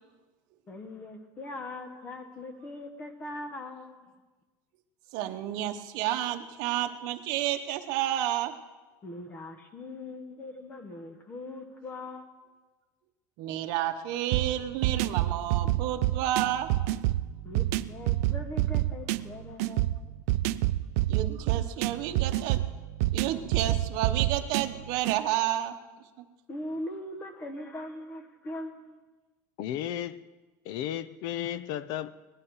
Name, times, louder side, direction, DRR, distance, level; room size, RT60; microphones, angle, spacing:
voice 1, 0.7-4.1 9.0-12.3 17.4-20.2 26.5-29.0, left 1 dB, 20° left, 7 dB, 1.2 m, -41 dB
voice 2, 5.1-8.6 13.4-16.7 21.1-22.6 23.1-25.7, right 12 dB, 55° right, 6 dB, 1.0 m, -30 dB
sound 1, 14.3-25.2, right 16 dB, 70° right, 0.4 m, -28 dB
voice 3, 29.6-30.2 30.6-32.1, left 11 dB, 50° left, 18 dB, 0.5 m, -34 dB
19.0 x 11.5 x 4.8 m, 1.3 s
cardioid pair, 160°, 9 cm